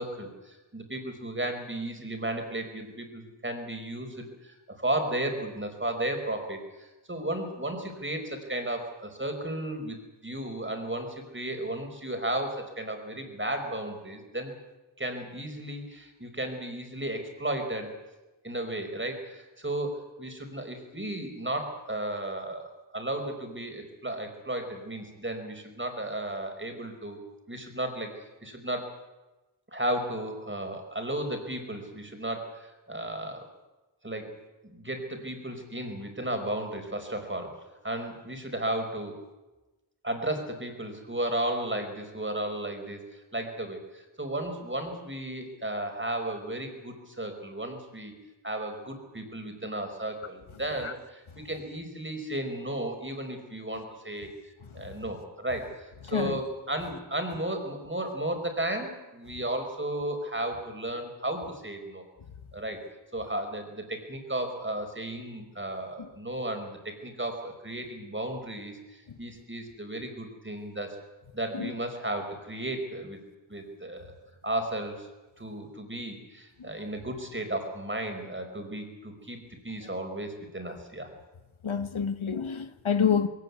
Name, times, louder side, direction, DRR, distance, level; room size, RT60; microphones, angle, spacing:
voice 1, 0.0-10.0 10.2-14.5 15.0-17.9 18.4-27.2 27.5-28.9 29.7-33.5 34.0-34.3 34.6-37.5 37.8-39.1 40.0-48.1 48.4-54.3 54.7-62.1 62.5-62.8 63.1-71.0 71.3-73.2 73.5-74.1 74.4-75.1 75.4-81.1, right 1 dB, 25° right, 4.7 m, -34 dB
voice 2, 81.6-83.3, left 7 dB, 80° left, 1.3 m, -27 dB
22.0 x 16.5 x 9.6 m
wide cardioid pair, 85°, 48 cm